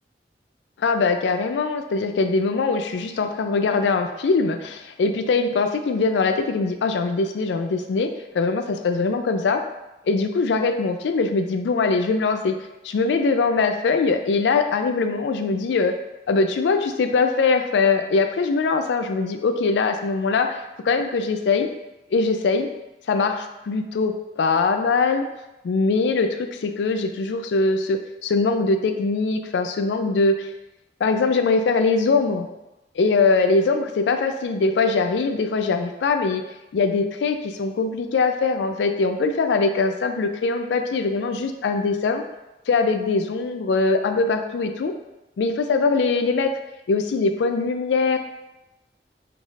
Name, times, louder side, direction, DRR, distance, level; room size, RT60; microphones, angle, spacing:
voice 1, 0.8-9.6 10.1-12.5 12.8-15.9 16.3-20.6 20.8-21.7 22.1-22.7 23.1-25.3 25.6-30.5 31.0-32.5 33.0-36.4 36.7-42.2 42.7-44.9 45.4-46.5 46.9-48.2, left 4 dB, 85° left, 7 dB, 0.3 m, -22 dB
3.3 x 2.4 x 4.0 m, 0.97 s
head